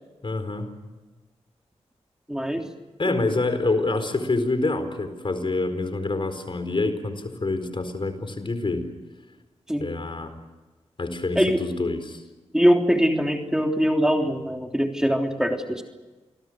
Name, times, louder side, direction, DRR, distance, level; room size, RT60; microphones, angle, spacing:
voice 1, 0.2-0.7 3.0-8.9 9.8-10.4 11.0-12.2, left 2 dB, 45° left, 9 dB, 4.4 m, -26 dB
voice 2, 2.3-2.7 9.7-9.9 11.3-11.6 12.5-15.8, equal, 5° right, 3 dB, 3.3 m, -22 dB
28.5 x 22.0 x 6.6 m, 1.2 s
cardioid pair, 55°, 12 cm